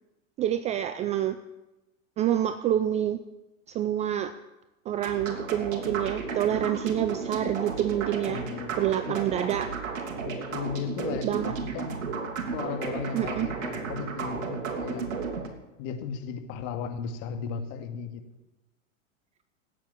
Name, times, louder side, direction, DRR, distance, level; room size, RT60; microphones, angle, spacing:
voice 1, 0.4-1.4 2.2-3.2 3.7-4.3 4.9-8.4 8.8-9.7 11.2-11.5 13.1-13.5, right 11 dB, 15° right, 12 dB, 0.4 m, -27 dB
sound 1, 5.0-15.5, right 5 dB, 70° right, 3.0 m, -34 dB
voice 2, 8.3-8.8 9.2-9.5 10.3-12.0 12.5-15.1 15.8-18.2, left 7 dB, 45° left, 6 dB, 2.3 m, -36 dB
14.5 x 9.2 x 9.8 m, 1.0 s
hypercardioid pair, 115°, 41 cm